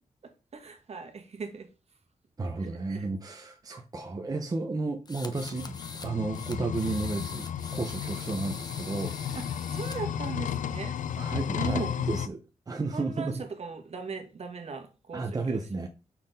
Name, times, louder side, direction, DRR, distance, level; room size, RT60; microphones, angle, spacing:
voice 1, 0.5-1.7 2.6-3.1 9.3-9.4 9.7-11.0 11.6-11.9 12.9-15.6, right 5 dB, 55° right, 5 dB, 1.3 m, -38 dB
voice 2, 2.4-9.2 11.2-12.4 12.7-13.4 15.1-15.9, right 3 dB, 30° right, 4 dB, 0.7 m, -33 dB
sound 1, 5.0-6.1 6.3-10.0, left 3 dB, 30° left, 0.8 m, -44 dB
sound 2, 5.3-12.3, left 9 dB, 90° left, 0.4 m, -33 dB
5.7 x 4.3 x 5.2 m, 0.32 s
wide cardioid pair, 135°, 13 cm